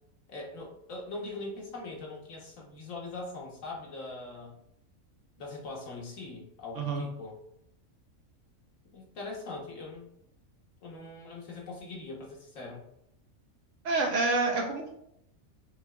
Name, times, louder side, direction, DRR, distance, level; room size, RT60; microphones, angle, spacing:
voice 1, 0.3-4.6 5.4-7.4 8.9-10.1 10.8-12.9, left 3 dB, 70° left, -2 dB, 1.4 m, -41 dB
voice 2, 13.8-14.9, right 3 dB, 65° right, 2 dB, 1.0 m, -28 dB
5.9 x 2.8 x 2.3 m, 0.75 s
omnidirectional pair, 1.4 m